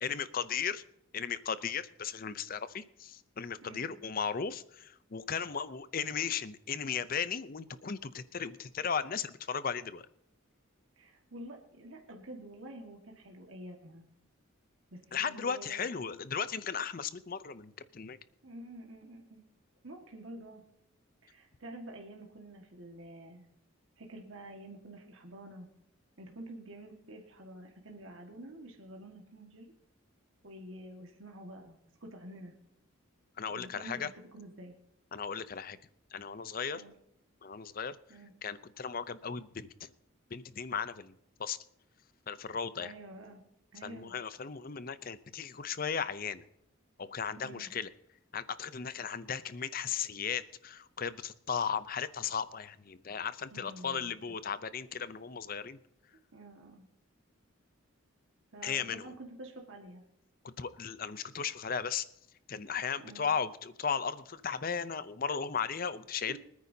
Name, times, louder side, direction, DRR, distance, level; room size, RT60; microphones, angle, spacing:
voice 1, 0.0-0.8 1.1-10.1 15.1-18.2 33.4-34.1 35.1-35.8 36.1-36.8 37.4-38.0 38.4-39.9 40.3-41.1 41.4-41.6 42.3-42.9 43.8-46.4 47.0-47.9 48.3-55.8 58.6-59.1 60.4-62.1 62.5-66.4, left 6 dB, 45° left, 14 dB, 0.6 m, -36 dB
voice 2, 3.6-3.9 11.0-14.0 14.9-15.9 18.4-19.4 19.8-20.6 21.2-23.5 24.0-25.7 26.2-29.7 30.4-32.5 33.5-34.0 34.3-34.8 36.7-36.9 38.1-38.3 42.8-43.4 43.7-44.1 47.4-47.7 53.5-54.1 56.3-56.9 58.5-60.0 63.0-63.3 66.3-66.4, right 1 dB, 65° right, 1 dB, 1.7 m, -48 dB
24.5 x 9.6 x 2.8 m, 0.78 s
head